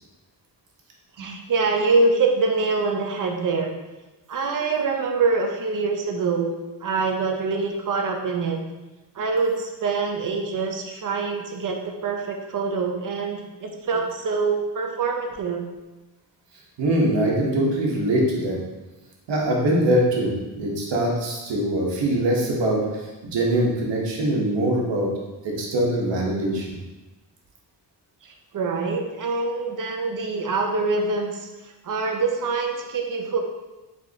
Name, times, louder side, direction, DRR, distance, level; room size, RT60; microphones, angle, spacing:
voice 1, 1.2-3.7 4.3-8.6 9.2-15.6 28.2-31.5 31.8-33.4, right 4 dB, 50° right, 2 dB, 0.6 m, -25 dB
voice 2, 16.8-18.6 19.3-22.8 23.3-25.1 25.4-26.7, right 1 dB, 80° right, -2 dB, 1.1 m, -22 dB
5.1 x 3.4 x 2.8 m, 1.1 s
wide cardioid pair, 155°, 43 cm